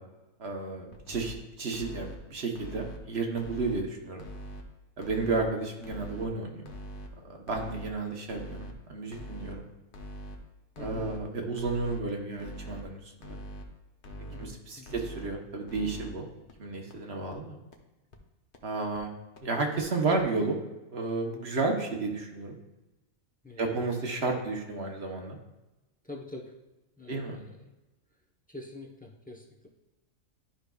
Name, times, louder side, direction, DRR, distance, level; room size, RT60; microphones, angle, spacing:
voice 1, 0.4-4.2 5.0-6.7 7.2-9.7 10.8-13.4 14.4-16.3 16.6-17.6 18.6-19.1 19.4-20.6 20.9-22.6 23.6-25.4 27.1-27.4, right 3 dB, 55° right, 2 dB, 1.1 m, -32 dB
sound 1, 0.9-1.3 1.7-2.2 2.5-3.0 3.4-3.8 4.2-4.6 5.0-5.4 5.8-6.3 6.7-7.1 7.5-7.9 8.3-8.7 9.1-9.5 9.9-10.4 10.8-11.2 11.6-12.0 12.4-12.8 13.2-13.6 14.0-14.5 14.9-15.3 15.7-16.1 16.5-16.6 16.9-17.0 17.3-17.4 17.7-17.8 18.1-18.2 18.5-18.6 18.9-19.0 19.4-19.5 19.8-19.9 20.2-20.3, equal, 45° left, 0.9 m, -42 dB
voice 2, 10.8-11.1 14.3-15.0 23.4-23.8 24.3-24.4 26.0-26.5 27.0-27.7 28.5-29.7, left 2 dB, 10° left, -1 dB, 0.6 m, -46 dB
12.0 x 5.1 x 2.3 m, 1.0 s
omnidirectional pair, 1.4 m